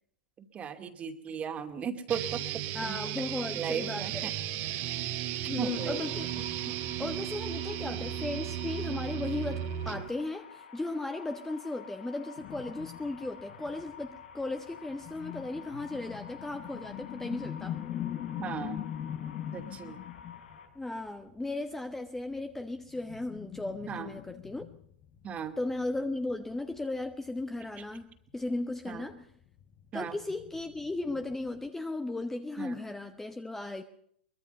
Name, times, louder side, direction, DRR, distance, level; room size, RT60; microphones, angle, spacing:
voice 1, 0.4-2.4 2.8-3.0 3.5-4.3 5.6-6.1 18.4-18.8 19.5-20.0 23.9-24.1 25.2-25.5 28.9-29.0 29.9-30.2 32.6-32.7, right 7 dB, 25° right, 7 dB, 2.5 m, -36 dB
sound 1, 2.1-10.1, right 11 dB, 45° right, 2.1 m, -35 dB
voice 2, 2.7-4.3 5.5-17.8 20.7-24.7 25.6-29.3 29.9-33.8, left 2 dB, 5° left, 7 dB, 1.2 m, -36 dB
sound 2, 5.7-20.7, left 7 dB, 75° left, 4.5 m, -50 dB
sound 3, 12.4-20.9 21.2-21.4 22.3-27.7 28.0-28.1 28.5-28.6 28.9-31.7, left 11 dB, 35° left, 1.4 m, -42 dB
23.5 x 20.5 x 5.4 m, 0.67 s
hypercardioid pair, 120°, 6 cm